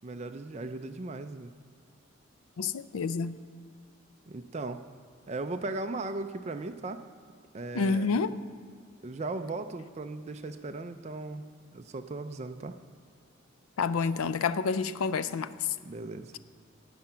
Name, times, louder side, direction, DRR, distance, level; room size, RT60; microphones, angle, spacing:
voice 1, 0.0-1.5 4.3-4.8 5.3-7.0 7.5-8.2 9.0-11.4 11.7-12.7 15.9-16.3, right 2 dB, 30° right, 7 dB, 0.4 m, -37 dB
voice 2, 2.6-3.4 7.7-8.4 13.8-15.7, left 5 dB, 80° left, 15 dB, 0.4 m, -29 dB
11.5 x 8.7 x 5.6 m, 2.2 s
head